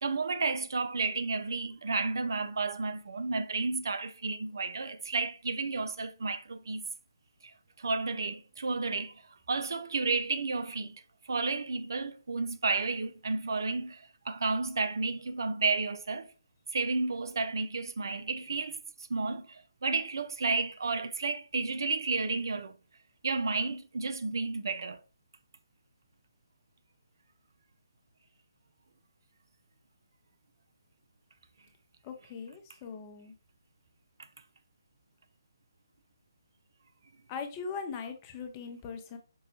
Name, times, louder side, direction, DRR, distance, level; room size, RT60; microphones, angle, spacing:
voice 1, 0.0-6.8 7.4-9.2 9.5-16.3 16.7-18.8 19.1-22.7 23.2-25.0, right 3 dB, 65° right, 0.4 m, -32 dB
voice 2, 32.0-33.3 37.3-39.2, left 5 dB, 25° left, 0.6 m, -40 dB
5.3 x 2.1 x 2.9 m
figure-of-eight pair, 145°, 2 cm